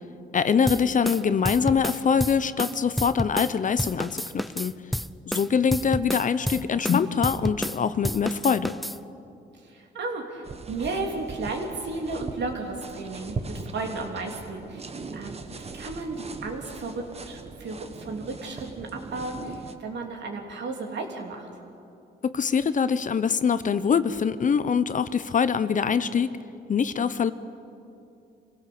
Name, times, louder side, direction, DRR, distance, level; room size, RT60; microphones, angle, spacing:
voice 1, 0.3-4.7 5.3-8.7 22.2-26.3 26.7-27.3, left 6 dB, 40° left, 13 dB, 0.8 m, -24 dB
sound 1, 0.7-3.5 3.8-7.8 8.0-9.0, equal, ahead, 0.5 m, -30 dB
voice 2, 9.6-14.9 15.1-21.5, right 3 dB, 65° right, 2 dB, 3.2 m, -34 dB
sound 2, 10.4-19.7, right 3 dB, 30° right, 1.3 m, -40 dB
25.0 x 16.5 x 7.0 m, 2.6 s
cardioid pair, 90°, 20 cm